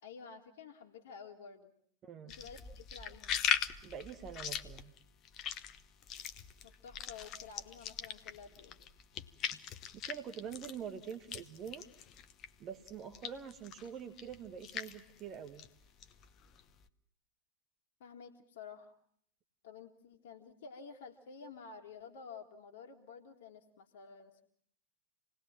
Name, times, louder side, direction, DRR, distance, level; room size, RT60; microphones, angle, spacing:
voice 1, 0.0-1.7 2.2-3.3 6.6-8.8 18.0-18.9 19.6-24.4, left 5 dB, 55° left, 2 dB, 1.9 m, -51 dB
voice 2, 2.0-2.3 3.8-4.9 9.9-11.8 12.6-15.7, right 8 dB, 30° right, 7 dB, 1.6 m, -45 dB
sound 1, 2.3-12.6 12.9-16.9, left 9 dB, 35° left, 1.1 m, -40 dB
27.5 x 19.5 x 7.4 m, 0.63 s
figure-of-eight pair, 90°, 0 cm